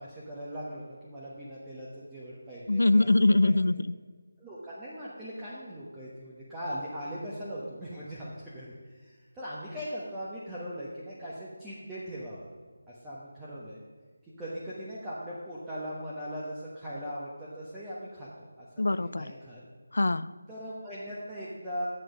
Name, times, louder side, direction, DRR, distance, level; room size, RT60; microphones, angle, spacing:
voice 1, 0.0-3.1 3.4-3.5 4.4-12.5 12.9-13.8 14.4-19.6 20.5-21.9, equal, 10° right, -9 dB, 1.1 m, -40 dB
voice 2, 2.7-3.9 18.8-19.3 19.9-20.3, left 2 dB, 70° left, 17 dB, 0.3 m, -23 dB
7.7 x 7.7 x 5.0 m, 1.5 s
figure-of-eight pair, 165°, 0 cm